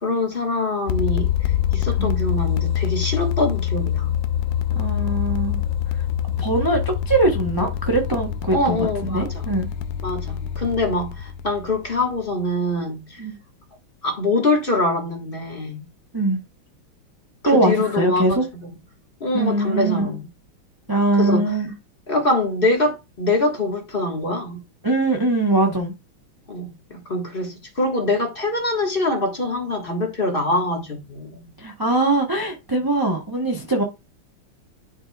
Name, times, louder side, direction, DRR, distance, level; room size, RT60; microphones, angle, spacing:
voice 1, 0.0-4.1 8.5-9.5 10.0-13.2 14.0-15.8 17.4-18.7 19.2-20.3 21.2-21.6 22.1-24.6 26.5-31.4, left 2 dB, 30° left, 1.5 m, -24 dB
sound 1, 0.9-12.6, left 10 dB, 75° left, 1.2 m, -25 dB
voice 2, 4.7-5.6 6.4-6.8 7.1-9.7 13.2-13.3 16.1-16.4 17.4-18.4 19.3-20.1 20.9-21.7 24.8-25.9 31.6-33.8, right 2 dB, 20° right, 0.5 m, -21 dB
10.5 x 4.6 x 2.3 m
omnidirectional pair, 2.2 m